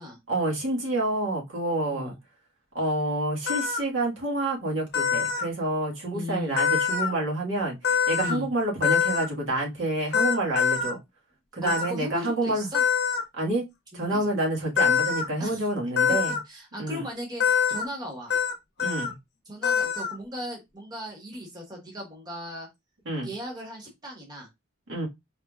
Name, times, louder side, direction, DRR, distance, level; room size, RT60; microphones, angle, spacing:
voice 1, 0.3-2.1 2.7-11.0 11.5-12.7 13.3-13.6 13.9-16.4 16.8-17.0 18.8-19.1 23.0-23.3 24.9-25.1, right 2 dB, 70° right, 1.6 m, -28 dB
sound 1, 3.5-3.8 4.9-5.5 6.6-7.1 7.8-8.4 8.8-9.3 10.1-10.9 11.7-11.9 12.7-13.2 14.8-15.2 16.0-16.4 17.4-17.9 18.3-18.5 18.8-19.1 19.6-20.1, left 7 dB, 60° left, 0.8 m, -24 dB
voice 2, 6.1-6.6 8.2-8.5 11.6-12.8 13.9-14.3 15.4-15.7 16.1-16.2 16.5-18.3 19.5-22.7 23.2-24.5, left 1 dB, 20° right, 1.4 m, -37 dB
4.4 x 3.5 x 2.3 m
head